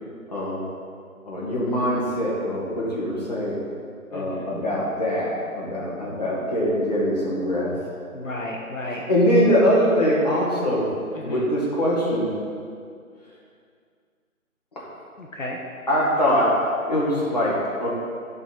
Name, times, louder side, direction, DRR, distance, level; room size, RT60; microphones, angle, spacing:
voice 1, 0.3-0.6 1.2-3.6 4.1-7.7 8.9-10.9 11.2-12.3 14.7-14.9 15.9-16.5 16.8-17.9, equal, 30° left, -7 dB, 1.4 m, -23 dB
voice 2, 4.1-4.5 8.1-9.1 11.1-11.5 15.2-15.6, left 1 dB, 60° left, -2 dB, 0.9 m, -33 dB
9.9 x 4.0 x 3.9 m, 2.2 s
figure-of-eight pair, 165°, 43 cm